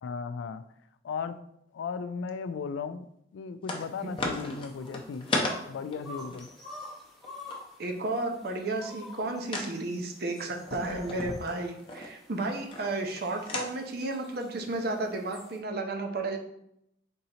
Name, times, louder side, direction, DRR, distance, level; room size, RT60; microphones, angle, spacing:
voice 1, 0.0-0.6 1.0-1.4 1.7-3.0 3.3-5.3 5.7-6.5, left 5 dB, 85° left, 12 dB, 0.3 m, -36 dB
sound 1, 3.6-3.9 4.2-7.6 9.5-9.7 10.6-12.1 12.7-13.2 13.5-13.7, left 2 dB, 30° left, 0.6 m, -33 dB
sound 2, 3.8-15.6, left 2 dB, ahead, 0.8 m, -50 dB
voice 2, 7.8-16.4, right 2 dB, 55° right, 3 dB, 0.6 m, -33 dB
3.7 x 2.8 x 4.1 m, 0.76 s
head